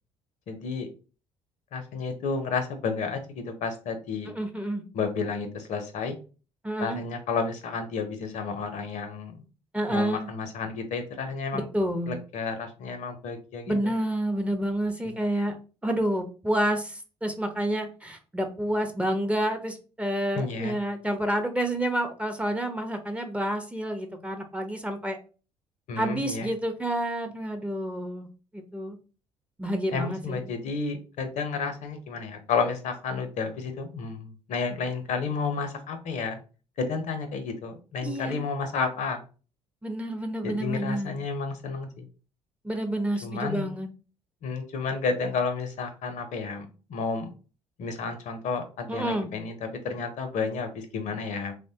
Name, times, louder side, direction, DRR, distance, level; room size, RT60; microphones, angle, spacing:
voice 1, 0.5-0.9 1.7-4.3 4.9-6.2 6.8-9.4 9.9-11.7 12.1-13.7 15.0-15.1 20.4-20.8 25.9-26.5 29.9-36.4 36.8-39.2 40.4-42.1 43.2-43.7 44.4-47.3 47.8-51.5, left 4 dB, 55° left, 7 dB, 0.6 m, -31 dB
voice 2, 4.4-4.8 6.6-7.0 9.7-10.3 11.5-12.2 13.7-15.5 15.8-25.2 26.0-28.3 28.5-29.0 29.6-30.4 38.0-38.4 39.8-41.2 42.6-43.9 48.9-49.3, right 1 dB, 10° right, 6 dB, 0.6 m, -29 dB
3.1 x 2.1 x 2.7 m, 0.35 s
hypercardioid pair, 55°, 15 cm